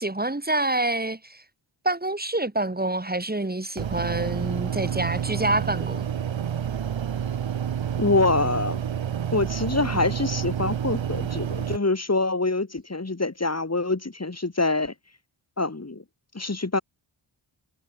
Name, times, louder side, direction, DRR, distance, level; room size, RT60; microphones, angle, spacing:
voice 1, 0.0-1.4 1.8-6.1, right 2 dB, 20° right, 4.7 m, -27 dB
sound 1, 3.8-11.8, right 9 dB, 65° right, 1.2 m, -29 dB
voice 2, 8.0-8.8 9.3-14.9 15.6-16.0 16.3-16.8, left 3 dB, 30° left, 7.0 m, -25 dB
cardioid pair, 60°, 48 cm